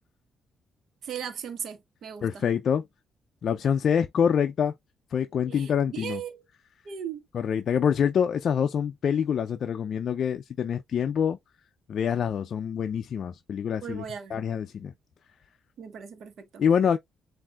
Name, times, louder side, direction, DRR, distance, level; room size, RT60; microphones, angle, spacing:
voice 1, 1.0-2.4 5.5-6.4 6.8-7.2 13.8-14.4 15.8-16.6, right 8 dB, 65° right, 1.1 m, -38 dB
voice 2, 2.2-2.9 3.4-4.7 5.1-6.2 7.3-11.4 11.9-14.1 14.3-14.9 16.6-17.0, left 7 dB, 60° left, 0.4 m, -26 dB
7.4 x 2.6 x 2.3 m
cardioid pair, 90°, 0 cm